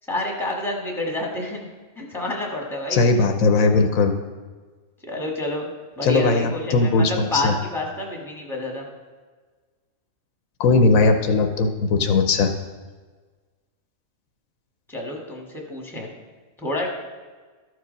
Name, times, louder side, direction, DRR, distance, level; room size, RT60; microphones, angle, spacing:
voice 1, 0.1-1.6 2.0-3.0 5.0-5.7 6.0-8.9 14.9-16.1 16.6-16.9, left 1 dB, ahead, -1 dB, 1.4 m, -28 dB
voice 2, 2.9-4.1 6.0-7.5 10.6-12.5, left 3 dB, 75° left, 6 dB, 1.1 m, -19 dB
13.0 x 4.7 x 5.2 m, 1.4 s
omnidirectional pair, 1.5 m